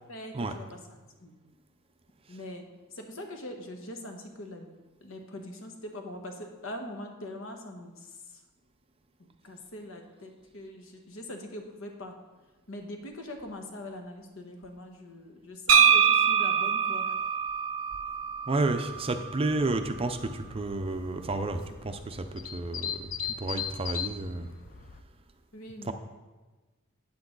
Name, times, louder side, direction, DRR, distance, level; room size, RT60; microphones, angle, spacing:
voice 1, 0.1-0.8 1.2-1.4 2.3-2.7 2.9-4.7 5.0-8.4 9.2-12.1 12.7-17.2 25.5-25.9, left 1 dB, 65° left, 4 dB, 1.3 m, -42 dB
sound 1, 15.7-19.5, right 7 dB, 75° right, 0.6 m, -24 dB
voice 2, 18.5-24.5 25.8-25.9, right 2 dB, 25° right, 7 dB, 0.5 m, -31 dB
sound 2, 19.5-25.0, left 8 dB, 40° left, 0.5 m, -39 dB
8.6 x 8.3 x 3.9 m, 1.3 s
head